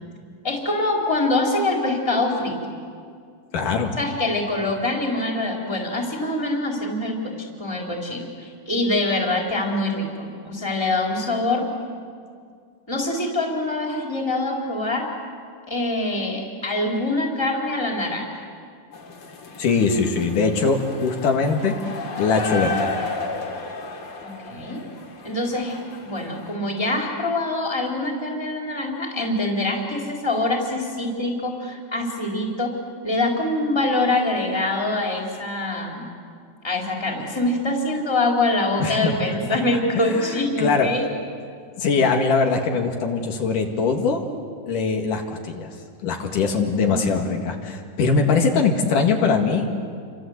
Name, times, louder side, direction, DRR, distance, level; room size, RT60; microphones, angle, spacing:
voice 1, 0.4-2.5 4.0-11.6 12.9-15.1 15.7-18.2 24.2-24.8 25.2-32.7 33.0-36.1 36.6-41.1 46.8-47.0, left 2 dB, 10° left, 0 dB, 3.6 m, -24 dB
voice 2, 3.5-3.9 19.6-21.7 22.2-22.9 38.8-39.1 39.5-39.6 40.0-40.9 41.8-44.2 44.7-45.7 46.0-49.7, left 4 dB, 75° left, 3 dB, 3.4 m, -21 dB
sound 1, 18.9-26.6, left 3 dB, 45° left, 3.2 m, -33 dB
29.5 x 25.0 x 8.0 m, 2.2 s
omnidirectional pair, 3.8 m